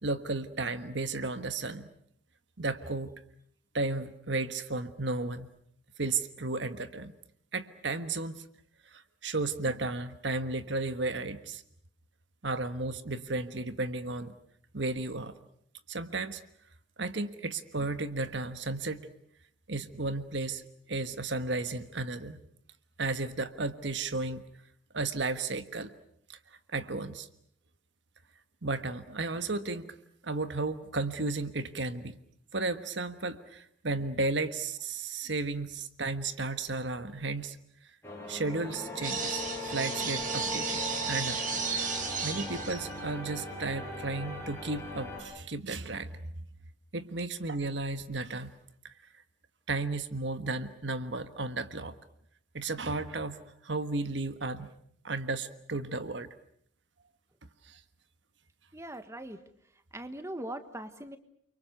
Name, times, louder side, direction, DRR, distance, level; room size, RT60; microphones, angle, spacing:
voice 1, 0.0-1.9 2.6-3.1 3.7-5.5 6.0-7.1 7.5-8.4 8.9-11.6 12.4-14.3 14.7-15.3 15.9-16.4 17.0-19.0 19.7-20.6 20.9-22.4 23.0-24.4 24.9-25.9 26.3-26.4 26.7-27.3 28.6-29.9 30.2-32.2 32.5-37.6 38.3-39.4 39.7-41.8 42.2-46.1 46.9-48.5 48.8-48.9 49.7-51.9 52.5-53.4 53.6-54.7 55.0-56.3 57.7-57.8, right 3 dB, 70° right, 11 dB, 1.4 m, -33 dB
sound 1, 38.0-45.2, left 1 dB, 15° left, 7.3 m, -39 dB
sound 2, 39.0-43.1, right 5 dB, 45° right, 3.8 m, -34 dB
voice 2, 58.7-59.4 59.9-61.2, right 1 dB, 15° right, 9 dB, 1.4 m, -40 dB
29.5 x 24.5 x 6.7 m, 0.66 s
head